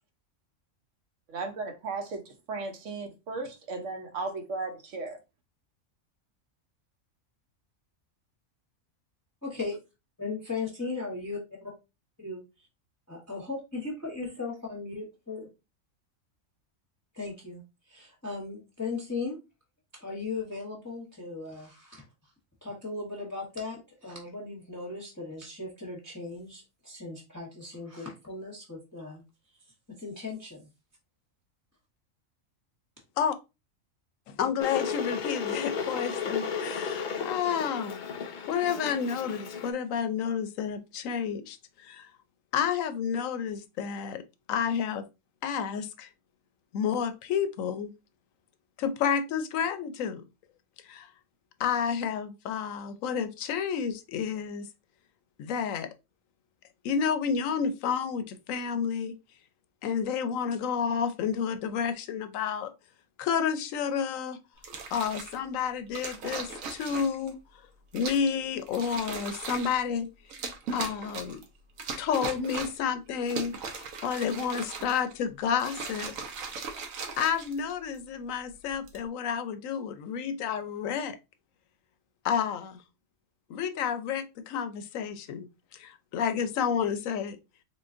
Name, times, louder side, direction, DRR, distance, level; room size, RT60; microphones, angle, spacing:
voice 1, 1.3-5.2, right 3 dB, 70° right, 1.1 m, -36 dB
voice 2, 9.4-9.8 10.2-11.7 12.2-12.4 13.1-15.5 17.1-17.6 17.9-19.4 19.9-22.0 22.6-29.2 30.0-30.7, left 3 dB, 15° left, 0.9 m, -37 dB
voice 3, 34.3-38.0 38.5-42.1 42.5-44.2 44.5-45.1 45.4-46.1 46.7-47.9 48.8-50.2 50.8-51.1 51.6-54.7 55.4-55.9 56.8-59.1 59.8-62.7 63.2-64.4 64.9-67.3 67.9-70.1 70.7-71.4 72.0-76.1 77.2-81.2 82.2-82.8 83.5-85.5 85.7-87.4, left 7 dB, 80° left, 1.0 m, -30 dB
Water / Boiling, 34.6-39.7, left 6 dB, 55° left, 0.5 m, -34 dB
sound 1, 64.6-65.4 65.9-67.3 67.9-68.3 68.7-69.8 70.3-71.4 71.8-72.9 73.2-75.1 75.5-78.0 78.7-79.0, right 4 dB, 90° right, 1.2 m, -38 dB
3.8 x 3.5 x 2.5 m
omnidirectional pair, 1.4 m